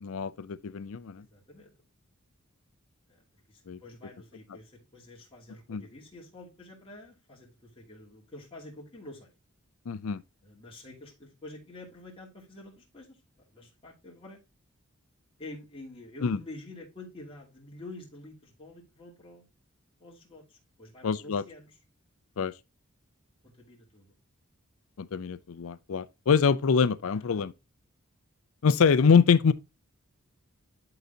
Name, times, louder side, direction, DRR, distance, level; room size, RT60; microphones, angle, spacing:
voice 1, 0.0-1.2 3.7-3.8 5.7-5.8 9.9-10.2 16.2-16.4 21.0-21.4 22.4-22.5 25.0-27.5 28.6-29.5, left 6 dB, 70° left, 0.5 m, -24 dB
voice 2, 1.3-1.7 3.1-9.3 10.4-13.2 13.5-14.4 15.4-19.4 20.0-21.8 23.4-24.1 27.0-27.4, left 2 dB, 25° left, 2.6 m, -48 dB
11.5 x 4.0 x 2.7 m
head